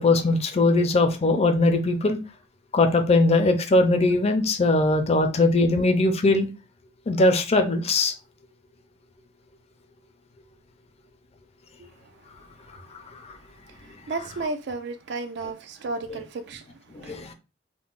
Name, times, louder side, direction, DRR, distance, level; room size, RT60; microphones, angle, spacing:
voice 1, 0.0-2.2 2.7-6.5 7.1-8.1 16.9-17.3, left 2 dB, 35° left, 0.4 m, -20 dB
voice 2, 11.8-12.1 13.0-13.1 13.7-17.3, right 3 dB, 60° right, 0.4 m, -34 dB
3.6 x 2.1 x 2.4 m
head